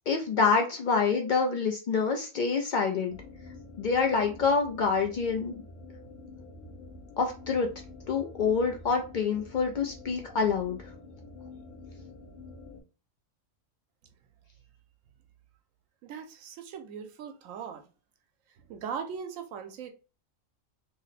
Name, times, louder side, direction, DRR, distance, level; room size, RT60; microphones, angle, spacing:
voice 1, 0.1-3.2 3.8-5.5 7.2-7.7 8.1-10.8, left 5 dB, 80° left, 0.4 m, -26 dB
sound 1, 3.1-12.8, left 2 dB, 45° left, 0.8 m, -48 dB
voice 2, 16.0-17.8 18.7-19.9, right 7 dB, 80° right, 1.0 m, -39 dB
2.8 x 2.1 x 4.0 m
omnidirectional pair, 1.4 m